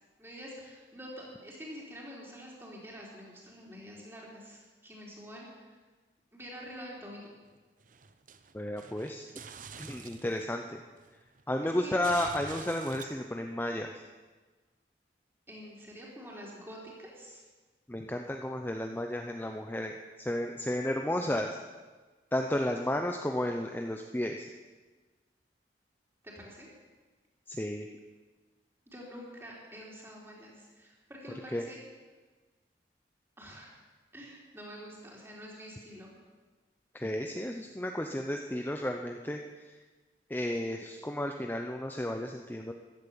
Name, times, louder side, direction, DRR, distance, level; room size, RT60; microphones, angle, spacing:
voice 1, 0.2-5.8 6.3-7.3 11.6-12.0 15.5-17.4 26.2-26.7 28.9-31.8 33.4-33.7 34.1-36.1, equal, 15° right, -3 dB, 3.8 m, -47 dB
sound 1, 7.6-10.6 11.0-13.0, right 6 dB, 45° right, 0.7 m, -47 dB
voice 2, 8.5-9.3 9.8-10.8 11.5-13.9 17.9-21.6 22.3-24.5 27.5-27.9 31.5-31.6 36.9-39.4 40.3-42.7, left 1 dB, 10° left, 3 dB, 0.6 m, -33 dB
15.5 x 12.0 x 7.1 m, 1.3 s
head